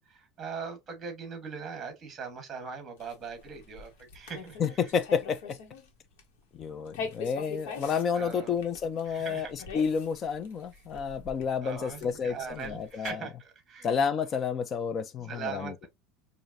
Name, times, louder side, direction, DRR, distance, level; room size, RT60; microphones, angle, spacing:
voice 1, 0.0-4.8 8.1-8.6 9.1-9.5 10.7-10.8 11.6-13.9 15.2-15.9, right 5 dB, 20° right, 1.4 m, -40 dB
sound 1, 3.0-5.9 6.2-6.4 6.9-13.1, left 5 dB, 85° left, 1.3 m, -43 dB
voice 2, 4.6-5.6 6.5-13.2 13.8-15.9, left 6 dB, 25° left, 0.5 m, -30 dB
5.0 x 2.6 x 2.6 m
cardioid pair, 165°, 0 cm